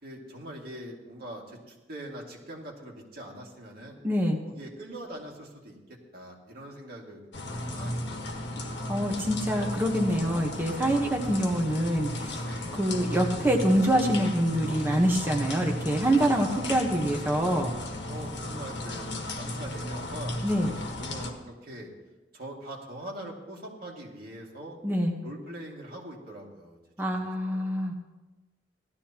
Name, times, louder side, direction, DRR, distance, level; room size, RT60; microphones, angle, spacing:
voice 1, 0.0-4.0 4.5-8.7 12.4-12.8 18.1-21.9 22.3-24.8 25.2-26.8 27.1-27.7, right 1 dB, 55° right, -1 dB, 2.3 m, -43 dB
voice 2, 4.0-4.4 8.9-12.4 12.8-17.7 20.4-20.7 24.8-25.1 27.0-27.9, equal, 10° right, 0 dB, 1.1 m, -25 dB
sound 1, 7.3-21.3, left 1 dB, 75° left, 1.5 m, -35 dB
17.0 x 12.5 x 2.9 m, 1.1 s
head